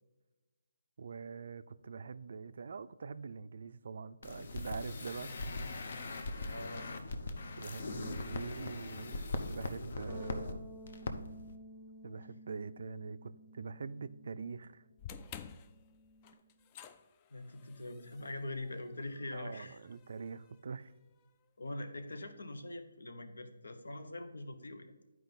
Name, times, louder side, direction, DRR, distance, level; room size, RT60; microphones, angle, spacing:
voice 1, 1.0-5.8 7.6-9.2 9.5-10.7 12.0-14.8 19.3-20.9, right 5 dB, 60° right, 0.4 m, -44 dB
sound 1, 4.2-10.5 10.9-11.1 11.4-11.5, left 3 dB, 55° left, 0.7 m, -40 dB
voice 2, 6.4-6.9 17.3-19.8 21.6-25.0, left 1 dB, 80° left, 1.0 m, -43 dB
Bass guitar, 10.1-16.3, left 1 dB, ahead, 0.9 m, -53 dB
sound 2, 15.0-21.3, left 7 dB, 25° left, 0.3 m, -53 dB
10.5 x 4.6 x 4.0 m
figure-of-eight pair, 155°, 0 cm